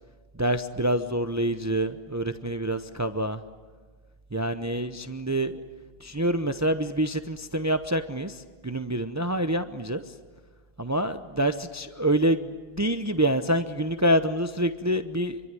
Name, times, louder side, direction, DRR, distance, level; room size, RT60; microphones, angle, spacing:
voice 1, 0.3-3.4 4.3-5.5 6.0-10.0 10.8-15.4, right 1 dB, 20° right, 9 dB, 0.8 m, -26 dB
26.0 x 23.5 x 9.8 m, 1.4 s
omnidirectional pair, 1.0 m